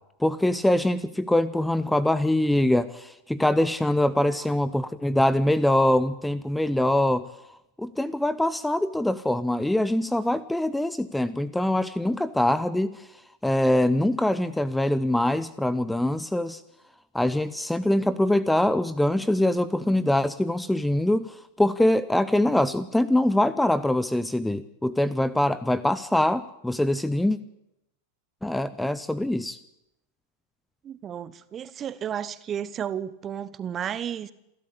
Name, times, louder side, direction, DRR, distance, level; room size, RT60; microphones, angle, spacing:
voice 1, 0.2-7.3 7.8-13.1 13.4-16.6 17.1-27.4 28.4-29.6, left 1 dB, 5° left, 17 dB, 0.7 m, -23 dB
voice 2, 30.8-34.3, right 9 dB, 25° right, 16 dB, 1.0 m, -33 dB
27.5 x 12.5 x 8.8 m, 0.87 s
figure-of-eight pair, 90°, 0 cm